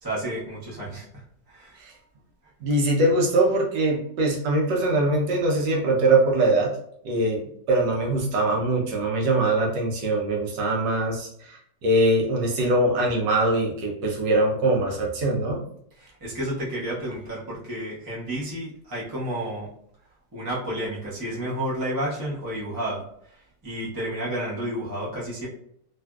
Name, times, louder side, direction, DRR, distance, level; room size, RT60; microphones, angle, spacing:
voice 1, 0.0-1.8 16.0-19.7 20.3-25.5, right 1 dB, 25° right, -6 dB, 0.5 m, -31 dB
voice 2, 2.6-6.7 7.0-15.6, right 2 dB, 80° right, -1 dB, 1.4 m, -22 dB
3.4 x 2.4 x 2.2 m, 0.68 s
omnidirectional pair, 1.9 m